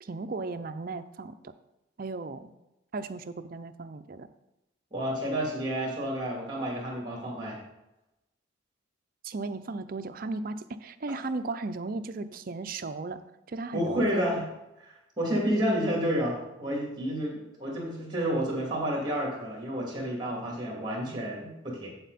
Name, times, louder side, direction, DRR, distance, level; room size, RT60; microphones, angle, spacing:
voice 1, 0.0-1.4 2.0-2.5 2.9-4.3 9.2-13.2 13.5-14.3, right 3 dB, 45° right, 10 dB, 0.5 m, -36 dB
voice 2, 4.9-7.6 13.7-14.4 15.2-21.9, equal, 20° right, -2 dB, 2.6 m, -30 dB
8.3 x 7.9 x 4.1 m, 0.94 s
head